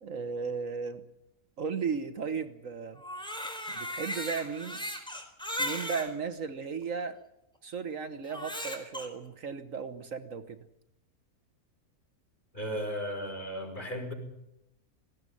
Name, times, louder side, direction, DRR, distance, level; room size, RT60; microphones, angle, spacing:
voice 1, 0.0-1.0 1.6-3.0 3.7-4.8 5.6-7.2 7.6-10.6, right 5 dB, 65° right, 1.5 m, -35 dB
Crying sobbing, 3.0-6.1 6.8-6.9 8.2-9.1, left 1 dB, 5° left, 4.0 m, -36 dB
voice 2, 12.5-14.1, equal, 30° left, 5.8 m, -35 dB
19.5 x 16.5 x 9.9 m
omnidirectional pair, 1.5 m